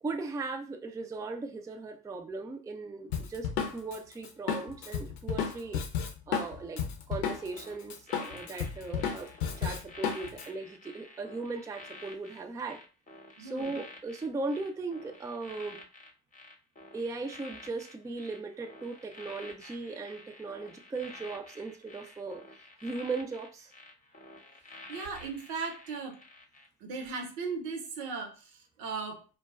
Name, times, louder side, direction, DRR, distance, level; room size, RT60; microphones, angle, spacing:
voice 1, 0.0-5.8 6.3-6.8 7.1-9.3 9.6-12.8 13.4-15.8 16.9-22.4 22.8-23.7, right 3 dB, 10° right, 5 dB, 0.3 m, -38 dB
Drum kit, 3.1-7.6 7.9-10.4, left 7 dB, 70° left, 0.6 m, -33 dB
sound 1, 7.5-26.7 27.0-27.3, left 2 dB, 20° left, 0.8 m, -50 dB
voice 2, 13.4-13.7 24.9-26.2 26.8-29.2, right 4 dB, 75° right, 3 dB, 0.7 m, -37 dB
2.2 x 2.1 x 3.4 m, 0.35 s
hypercardioid pair, 45°, 44 cm